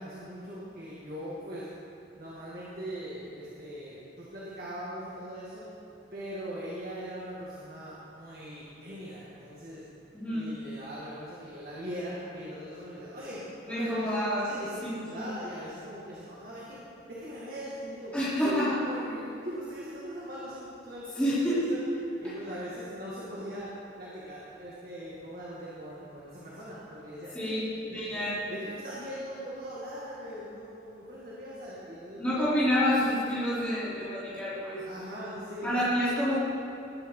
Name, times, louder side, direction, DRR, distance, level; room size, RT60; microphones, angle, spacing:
voice 1, 0.0-1.7 2.1-5.7 6.1-9.8 10.3-14.1 14.4-14.8 15.1-16.8 17.1-21.8 22.2-23.7 24.0-27.6 27.9-32.5 34.8-35.7, equal, 50° right, -7 dB, 2.2 m, -40 dB
voice 2, 10.1-10.5 13.6-14.4 14.8-15.3 18.1-18.7 21.1-21.6 27.3-27.6 27.9-28.3 32.2-34.8 35.6-36.3, equal, 5° left, -12 dB, 3.6 m, -28 dB
20.0 x 10.0 x 3.9 m, 2.8 s
head